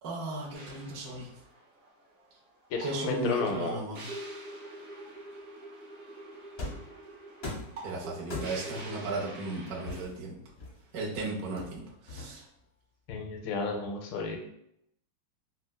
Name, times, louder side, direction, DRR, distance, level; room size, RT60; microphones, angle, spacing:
voice 1, 0.0-1.3 2.8-4.0 7.8-10.3 10.9-12.4, right 2 dB, 60° right, -4 dB, 1.0 m, -36 dB
sound 1, 0.5-10.0, right 1 dB, 90° right, 0.5 m, -44 dB
voice 2, 2.7-3.8 13.1-14.4, left 4 dB, 80° left, 3 dB, 1.3 m, -32 dB
sound 2, 6.6-6.9 7.4-7.8 8.3-8.8 9.9-11.0 11.6-12.6, left 2 dB, 50° left, 0.7 m, -40 dB
4.2 x 2.0 x 2.2 m, 0.75 s
omnidirectional pair, 2.1 m